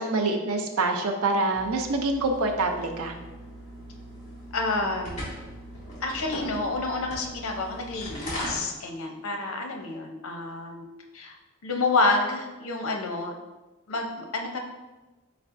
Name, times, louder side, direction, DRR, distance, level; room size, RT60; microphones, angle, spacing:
voice 1, 0.0-3.1, right 2 dB, 90° right, 3 dB, 0.6 m, -26 dB
sound 1, 1.5-8.6, equal, 30° left, 1.4 m, -39 dB
voice 2, 4.5-5.3 6.0-10.9 11.1-11.3 11.6-13.3 13.9-14.6, left 3 dB, 80° left, 2 dB, 0.6 m, -29 dB
4.4 x 4.1 x 2.6 m, 1.1 s
head